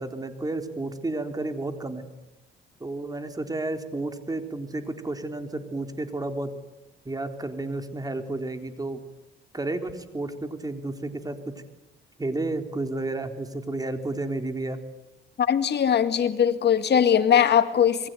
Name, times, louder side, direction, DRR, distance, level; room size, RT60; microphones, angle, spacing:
voice 1, 0.0-2.0 2.8-6.5 7.0-9.0 9.5-11.5 12.2-14.8, right 2 dB, 20° right, 7 dB, 3.8 m, -31 dB
voice 2, 15.4-18.1, left 8 dB, 60° left, 10 dB, 2.1 m, -20 dB
27.5 x 22.5 x 9.4 m, 0.92 s
cardioid pair, 90°, 20 cm